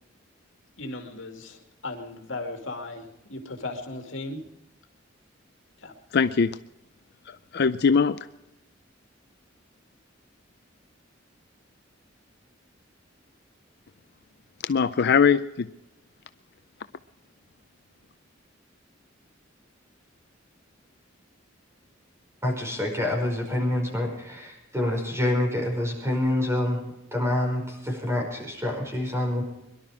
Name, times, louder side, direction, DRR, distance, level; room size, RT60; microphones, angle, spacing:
voice 1, 0.8-4.4 5.8-5.9, left 2 dB, 70° left, 4 dB, 2.5 m, -36 dB
voice 2, 6.1-6.6 7.3-8.2 14.6-15.7, left 6 dB, 55° left, 12 dB, 0.5 m, -21 dB
voice 3, 22.4-26.8 27.1-29.4, left 1 dB, 15° right, 1 dB, 5.1 m, -27 dB
22.5 x 12.0 x 4.9 m, 0.89 s
head